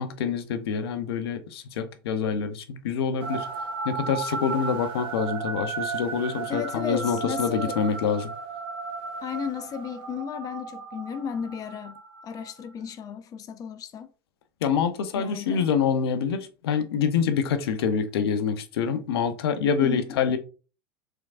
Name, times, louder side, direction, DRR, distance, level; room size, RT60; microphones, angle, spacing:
voice 1, 0.0-3.5 3.8-8.3 14.6-20.4, left 6 dB, 75° left, 0.7 m, -26 dB
sound 1, 3.2-12.7, right 5 dB, 45° right, 1.7 m, -35 dB
voice 2, 6.5-7.8 9.2-14.1 15.1-15.7 19.8-20.2, left 7 dB, 30° left, 0.4 m, -34 dB
4.6 x 3.7 x 2.4 m
hypercardioid pair, 90°, 13 cm